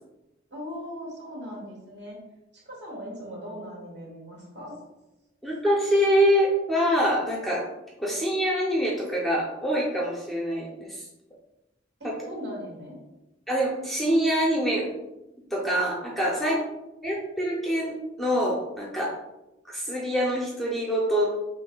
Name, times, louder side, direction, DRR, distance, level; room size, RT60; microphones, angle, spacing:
voice 1, 0.5-2.2 2.5-4.8 12.0-13.0 16.4-16.6, equal, 55° right, -3 dB, 1.5 m, -39 dB
voice 2, 5.4-7.7 8.0-11.0 12.0-12.2 13.5-14.9 15.5-16.6 17.0-19.1 19.7-21.3, equal, ahead, -3 dB, 0.5 m, -25 dB
5.5 x 3.3 x 2.2 m, 0.97 s
head